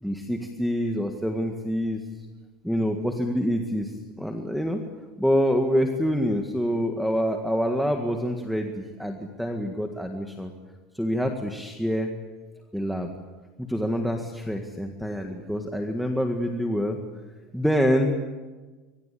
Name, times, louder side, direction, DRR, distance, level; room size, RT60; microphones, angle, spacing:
voice 1, 0.0-2.3 2.6-4.8 5.2-10.5 10.9-12.1 12.7-13.1 13.6-17.0 17.5-18.1, equal, ahead, 3 dB, 1.8 m, -26 dB
25.0 x 25.0 x 8.5 m, 1.3 s
cardioid pair, 165°, 0 cm